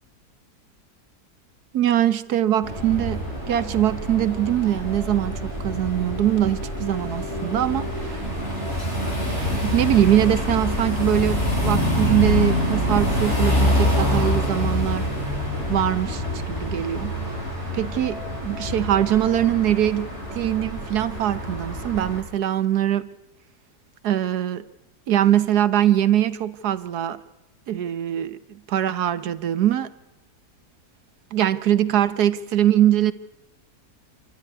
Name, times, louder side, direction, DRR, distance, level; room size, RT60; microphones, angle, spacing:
voice 1, 1.7-8.2 9.2-15.1 15.7-17.1 17.7-23.1 24.0-24.6 25.1-27.2 27.7-28.4 28.7-29.9 31.3-33.1, right 11 dB, 75° right, 1.5 m, -22 dB
sound 1, 2.6-22.2, left 1 dB, 45° left, 8.5 m, -26 dB
27.5 x 12.5 x 9.6 m
omnidirectional pair, 1.7 m